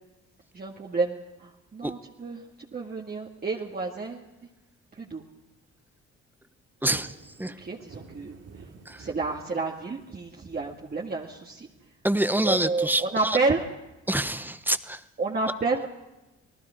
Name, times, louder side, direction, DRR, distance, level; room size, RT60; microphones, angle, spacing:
voice 1, 0.5-2.4 2.7-4.2 4.9-5.2 6.9-7.0 7.6-8.4 9.0-11.7 12.4-13.6 15.2-15.9, right 3 dB, 30° right, -1 dB, 2.0 m, -30 dB
voice 2, 6.8-7.1 7.4-7.6 8.9-9.0 12.0-13.4 14.1-15.0, right 1 dB, 5° right, 11 dB, 1.1 m, -26 dB
sound 1, 6.9-11.9, right 4 dB, 50° right, 4.1 m, -51 dB
28.0 x 18.5 x 5.0 m, 1.0 s
cardioid pair, 90°, 30 cm